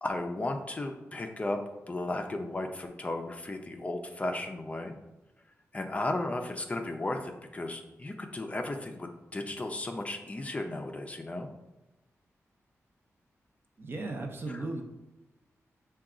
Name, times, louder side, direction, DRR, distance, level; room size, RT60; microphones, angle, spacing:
voice 1, 0.0-4.9 5.7-11.5 14.5-14.7, left 2 dB, 25° left, 4 dB, 0.4 m, -35 dB
voice 2, 13.8-14.8, right 2 dB, 45° right, 3 dB, 0.6 m, -36 dB
5.8 x 2.3 x 3.7 m, 1.0 s
wide cardioid pair, 115°, 5 cm